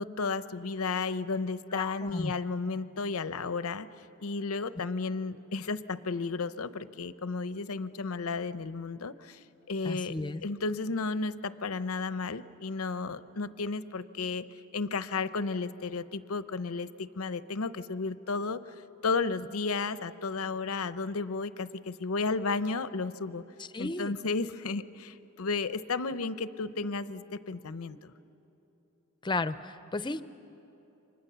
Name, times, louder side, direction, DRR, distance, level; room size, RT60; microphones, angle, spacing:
voice 1, 0.0-3.9 4.2-9.4 9.7-10.2 10.4-14.5 14.7-18.6 19.0-23.4 23.8-28.1, left 4 dB, 90° left, 13 dB, 0.7 m, -33 dB
voice 2, 1.7-2.3 9.8-10.4 23.7-24.1 29.2-30.2, left 2 dB, 20° left, 13 dB, 0.6 m, -33 dB
29.5 x 25.0 x 6.9 m, 3.0 s
head